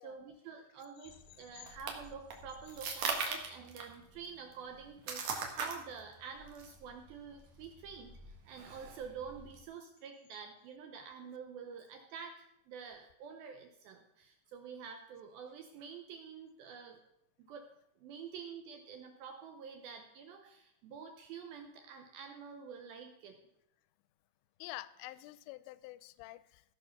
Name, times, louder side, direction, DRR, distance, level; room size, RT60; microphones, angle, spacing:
voice 1, 0.0-17.0 17.4-23.4, right 6 dB, 80° right, 4 dB, 2.1 m, -48 dB
sound 1, 1.1-9.6, right 4 dB, 60° right, 2.0 m, -41 dB
voice 2, 24.6-26.6, left 18 dB, 85° left, 16 dB, 2.6 m, -47 dB
16.0 x 5.9 x 5.8 m, 0.78 s
omnidirectional pair, 5.4 m